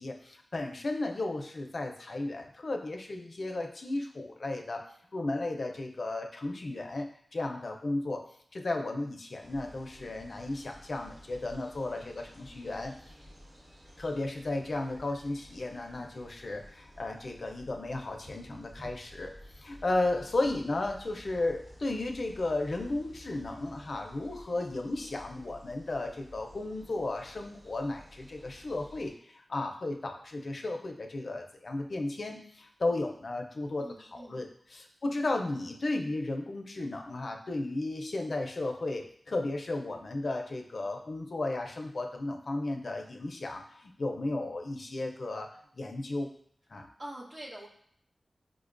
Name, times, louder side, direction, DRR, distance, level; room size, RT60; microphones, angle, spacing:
voice 1, 0.0-4.8 5.1-8.2 8.5-12.9 14.0-45.5 45.8-46.3 46.7-46.9, left 2 dB, 60° left, 3 dB, 0.4 m, -34 dB
sound 1, 9.4-29.1, equal, 50° right, 1.0 m, -53 dB
voice 2, 33.8-34.5 47.0-47.7, right 1 dB, 90° right, -5 dB, 1.0 m, -44 dB
4.9 x 2.2 x 2.4 m, 0.64 s
wide cardioid pair, 90°, 0 cm